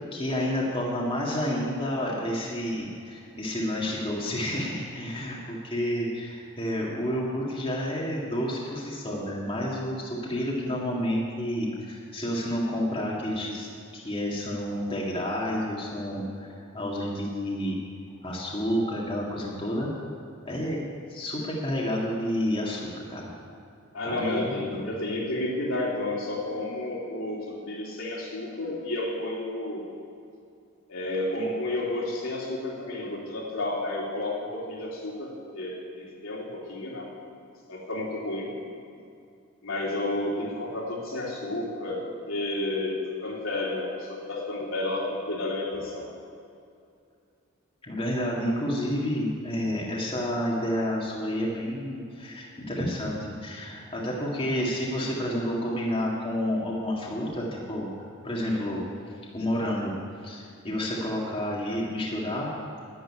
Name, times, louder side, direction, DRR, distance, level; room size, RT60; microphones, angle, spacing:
voice 1, 0.1-17.8 18.2-19.9 20.4-20.8 21.1-23.2 24.1-24.8 47.8-57.9 58.2-58.8 59.3-59.9 60.2-62.5, equal, 25° left, -4 dB, 1.9 m, -30 dB
voice 2, 23.9-29.8 30.9-37.1 37.7-38.6 39.6-46.1, left 2 dB, 75° left, -4 dB, 3.3 m, -31 dB
11.0 x 8.0 x 9.9 m, 2.5 s
head